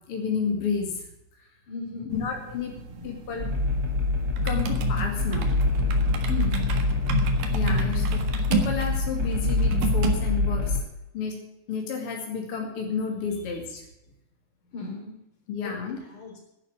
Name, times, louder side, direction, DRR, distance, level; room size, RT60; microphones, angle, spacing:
voice 1, 0.1-0.9 2.1-2.8 3.0-3.5 4.4-5.7 7.5-8.2 8.5-10.8 11.1-11.4 11.7-13.8 15.5-16.0, left 5 dB, 45° left, 0 dB, 3.1 m, -31 dB
voice 2, 1.7-2.2 2.8-3.2 6.3-6.7 14.7-15.1 15.6-15.7 16.0-16.3, left 3 dB, 65° left, 1 dB, 5.3 m, -36 dB
sound 1, 2.1-10.1, right 3 dB, 85° right, 3.3 m, -31 dB
sound 2, 3.4-10.8, left 3 dB, 30° right, 2.9 m, -25 dB
11.0 x 10.5 x 8.6 m, 0.88 s
omnidirectional pair, 3.8 m